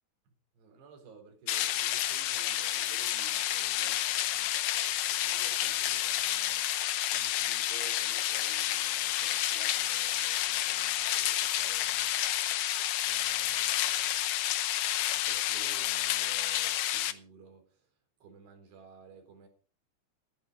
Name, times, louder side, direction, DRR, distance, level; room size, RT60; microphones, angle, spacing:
voice 1, 0.6-6.7 7.1-12.2 13.0-14.3 15.1-17.9 18.2-19.5, right 5 dB, 75° right, 6.0 m, -54 dB
sound 1, 1.5-17.1, left 13 dB, 80° left, 1.8 m, -30 dB
14.5 x 12.0 x 5.2 m
omnidirectional pair, 4.8 m